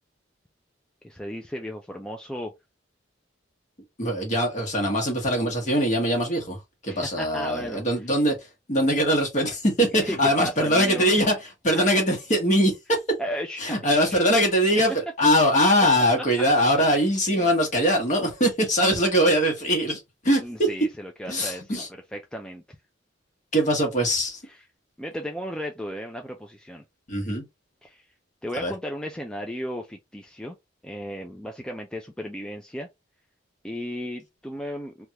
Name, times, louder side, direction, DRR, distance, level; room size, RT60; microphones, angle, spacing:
voice 1, 1.0-2.5 6.9-8.1 9.9-11.1 13.2-14.4 17.3-17.5 20.4-21.8 22.1-22.6 24.5-24.6 25.0-26.8 27.8-28.1 28.4-30.6 30.8-32.9 33.6-35.1, equal, 5° left, 0.3 m, -35 dB
voice 2, 4.0-6.6 6.8-8.3 8.7-11.3 11.6-13.0 13.6-20.7 21.3-21.9 23.5-24.4 27.1-27.4 28.6-28.7, equal, 40° left, 1.1 m, -22 dB
3.3 x 2.3 x 2.8 m
head